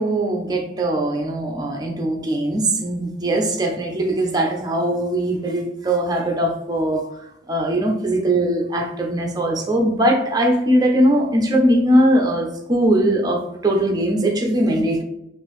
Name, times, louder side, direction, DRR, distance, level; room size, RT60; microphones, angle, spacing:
voice 1, 0.0-7.0 7.5-15.0, right 1 dB, 20° right, 1 dB, 0.6 m, -20 dB
3.8 x 2.6 x 3.1 m, 0.83 s
head